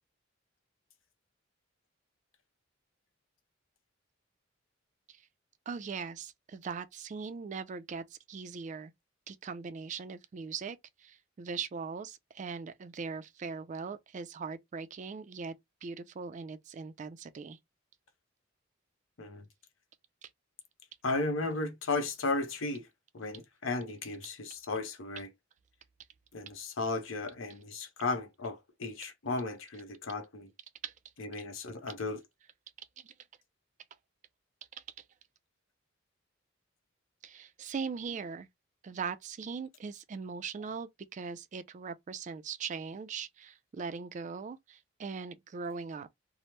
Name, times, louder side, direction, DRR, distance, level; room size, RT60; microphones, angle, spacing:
voice 1, 5.7-8.9 9.3-15.5 15.8-17.6 20.2-20.3 30.8-30.9 33.0-33.1 34.7-34.8 37.2-38.5 38.8-46.1, right 5 dB, 35° right, 0.3 m, -40 dB
voice 2, 21.0-22.9 23.1-25.3 26.3-30.5 31.2-32.2, left 3 dB, 80° left, 0.7 m, -35 dB
2.9 x 2.0 x 3.1 m
head